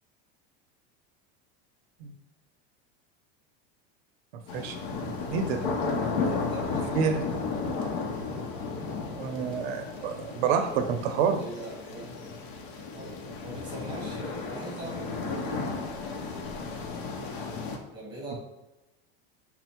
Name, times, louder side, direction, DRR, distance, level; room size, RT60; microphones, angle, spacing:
sound 1, 4.5-17.8, left 4 dB, 60° left, 0.6 m, -34 dB
voice 1, 5.0-5.6 6.9-7.2 9.2-11.4, right 6 dB, 90° right, 6 dB, 0.6 m, -28 dB
voice 2, 6.0-7.1 11.4-12.3 12.9-15.9 17.9-18.4, right 1 dB, 15° right, -3 dB, 1.0 m, -41 dB
4.2 x 2.0 x 4.2 m, 0.99 s
supercardioid pair, 175°, 30 cm